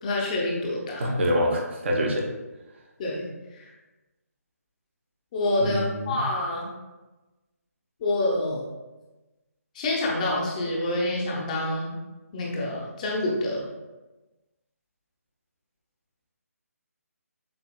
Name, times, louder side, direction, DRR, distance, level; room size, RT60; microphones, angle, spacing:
voice 1, 0.0-1.1 3.0-3.3 3.6-3.7 5.3-6.7 8.0-8.7 9.7-11.9 12.3-13.7, left 1 dB, 30° left, -2 dB, 0.8 m, -27 dB
voice 2, 1.0-2.3 5.6-6.2, equal, 45° right, -1 dB, 0.9 m, -25 dB
6.9 x 2.7 x 2.3 m, 1.1 s
figure-of-eight pair, 150°, 9 cm